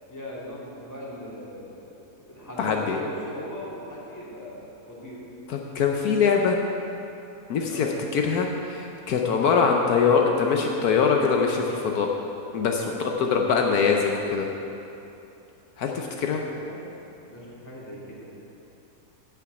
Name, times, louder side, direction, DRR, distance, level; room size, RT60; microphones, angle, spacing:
voice 1, 0.1-2.0 2.3-5.2 7.7-7.8 12.6-12.8 16.2-16.8 17.2-18.3, left 1 dB, 10° left, -7 dB, 2.3 m, -39 dB
voice 2, 2.6-3.0 5.5-6.6 7.5-7.9 8.1-12.1 12.5-14.5 15.8-16.4, left 5 dB, 75° left, 2 dB, 1.3 m, -23 dB
10.5 x 6.0 x 8.1 m, 2.9 s
omnidirectional pair, 1.6 m